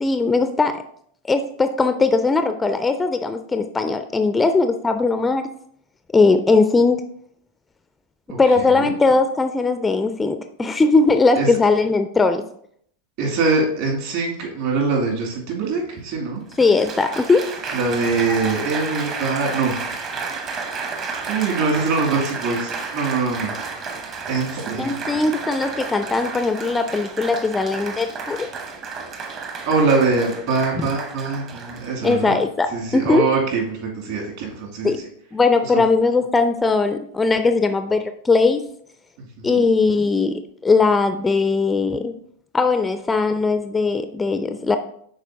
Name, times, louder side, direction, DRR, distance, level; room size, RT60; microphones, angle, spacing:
voice 1, 0.0-0.8 1.3-5.5 6.1-7.0 8.4-12.4 16.6-17.5 24.8-28.5 30.8-30.9 32.0-33.3 34.8-35.0 35.3-38.6 39.4-42.1 42.5-44.8, left 3 dB, 10° left, 9 dB, 0.3 m, -19 dB
voice 2, 8.3-8.9 11.3-11.5 13.2-16.4 17.7-19.7 21.3-23.5 24.3-25.2 29.6-32.4 32.7-35.1 35.7-35.8 39.2-39.6, right 4 dB, 50° right, -1 dB, 2.2 m, -23 dB
Applause, 15.7-15.8 16.5-32.4 33.2-33.5, right 4 dB, 35° right, 0.9 m, -32 dB
10.5 x 4.2 x 2.6 m, 0.67 s
figure-of-eight pair, 90°, 0 cm